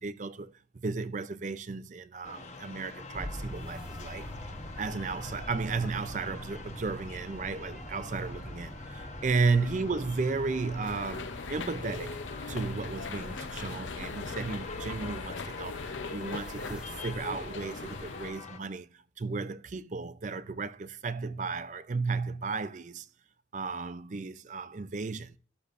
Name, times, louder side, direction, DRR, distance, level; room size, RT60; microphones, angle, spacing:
voice 1, 0.0-4.3 4.8-12.2 12.5-23.1 23.5-25.4, right 4 dB, 40° right, 0.4 m, -34 dB
sound 1, 2.2-18.6, left 3 dB, 40° left, 0.9 m, -45 dB
sound 2, 3.1-17.6, equal, 5° right, 1.3 m, -45 dB
sound 3, 10.8-18.3, left 4 dB, 85° left, 0.7 m, -40 dB
14.0 x 6.7 x 2.5 m
head